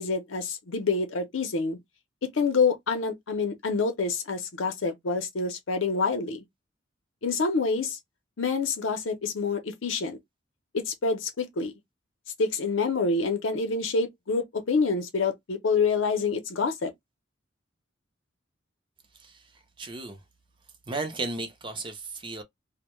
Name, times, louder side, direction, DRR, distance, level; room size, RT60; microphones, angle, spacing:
voice 1, 0.0-1.8 2.2-6.4 7.2-8.0 8.4-10.2 10.7-11.7 12.4-16.9, left 4 dB, 75° left, 0.6 m, -27 dB
voice 2, 19.8-20.2 20.9-22.4, right 3 dB, 25° right, 0.5 m, -34 dB
2.1 x 2.1 x 2.9 m
head